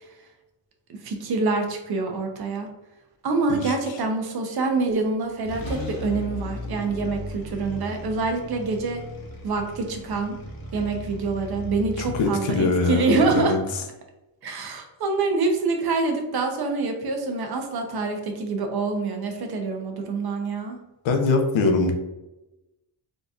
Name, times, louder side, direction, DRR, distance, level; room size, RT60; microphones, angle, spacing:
voice 1, 0.9-2.7 3.2-9.0 9.4-10.4 10.7-13.6 14.4-20.8, right 3 dB, 55° right, 4 dB, 0.7 m, -26 dB
voice 2, 3.5-4.0 12.0-13.6 21.0-21.9, left 3 dB, 90° left, 4 dB, 0.7 m, -23 dB
sound 1, 5.4-12.2, left 1 dB, 50° left, 0.9 m, -36 dB
3.8 x 2.6 x 2.3 m, 0.99 s
cardioid pair, 105°, 44 cm